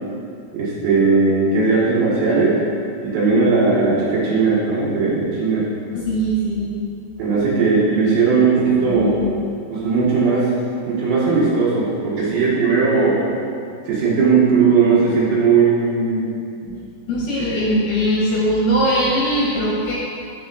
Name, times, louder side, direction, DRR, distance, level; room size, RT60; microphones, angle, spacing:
voice 1, 0.5-2.6 3.0-5.6 7.2-9.2 9.7-10.5 10.9-13.2 13.9-16.3 17.5-17.6, right 4 dB, 75° right, -6 dB, 3.0 m, -17 dB
voice 2, 5.9-6.8 8.8-9.5 16.7-16.8 17.1-19.9, equal, 75° left, -5 dB, 2.0 m, -21 dB
8.0 x 4.8 x 3.4 m, 2.4 s
omnidirectional pair, 4.4 m